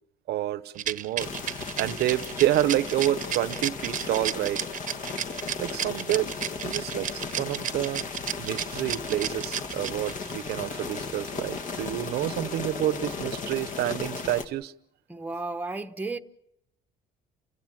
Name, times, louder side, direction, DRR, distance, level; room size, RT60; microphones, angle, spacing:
voice 1, 0.3-4.6 5.6-6.3 6.6-8.0 8.4-14.7, right 14 dB, 75° right, 0.8 m, -28 dB
Rattle, 0.8-10.3, right 10 dB, 50° right, 0.9 m, -32 dB
sound 1, 1.2-14.5, left 4 dB, 50° left, 2.0 m, -36 dB
voice 2, 15.1-16.2, right 3 dB, 10° right, 1.1 m, -33 dB
29.5 x 16.5 x 7.3 m
cardioid pair, 110°, 17 cm